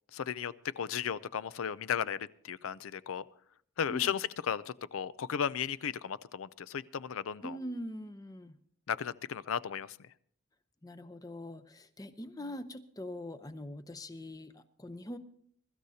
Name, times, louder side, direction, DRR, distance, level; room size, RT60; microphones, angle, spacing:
voice 1, 0.1-3.2 3.8-7.6 8.9-10.0, left 8 dB, 75° left, 17 dB, 0.4 m, -35 dB
voice 2, 7.4-8.6 10.8-15.2, left 1 dB, 15° left, 11 dB, 0.6 m, -43 dB
23.0 x 13.0 x 2.8 m, 0.63 s
head